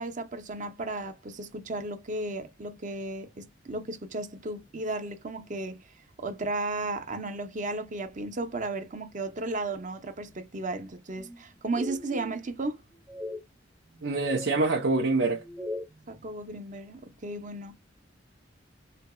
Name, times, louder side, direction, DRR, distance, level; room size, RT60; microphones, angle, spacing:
voice 1, 0.0-5.8 6.2-12.8 16.1-17.8, right 2 dB, 45° right, 0.8 m, -34 dB
sound 1, 11.2-11.4 11.8-12.6 13.1-13.4 13.9-14.5 15.2-16.0, left 1 dB, 10° right, 0.5 m, -39 dB
voice 2, 14.0-15.4, right 3 dB, 70° right, 0.8 m, -25 dB
4.4 x 2.8 x 2.3 m
head